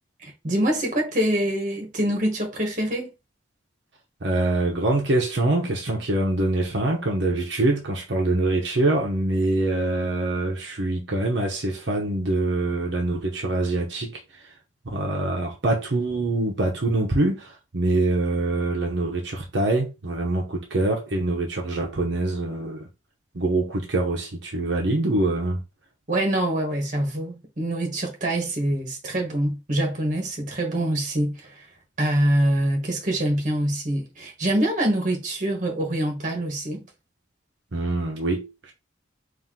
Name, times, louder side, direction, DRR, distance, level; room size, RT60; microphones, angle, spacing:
voice 1, 0.2-3.1 26.1-31.6 32.0-36.9, right 1 dB, 40° right, 1.4 m, -25 dB
voice 2, 4.2-14.5 14.8-22.9 23.3-25.6 37.7-38.7, right 2 dB, 70° right, 0.9 m, -24 dB
4.3 x 2.7 x 3.8 m
head